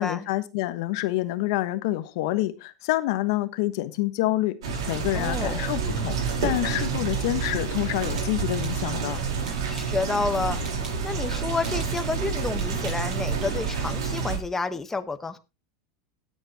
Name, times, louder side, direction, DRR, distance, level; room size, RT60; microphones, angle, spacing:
voice 1, 0.0-9.2, left 16 dB, 65° left, 1.2 m, -27 dB
sound 1, 4.6-14.4, right 5 dB, 85° right, 4.0 m, -28 dB
voice 2, 5.1-5.7 9.7-10.6 11.0-15.4, left 4 dB, 10° left, 1.1 m, -30 dB
sound 2, 7.7-9.0 9.4-10.2 10.6-11.1 11.6-12.2 12.5-13.7, right 3 dB, 25° right, 6.3 m, -46 dB
18.0 x 7.9 x 2.9 m
supercardioid pair, 120°, 3 cm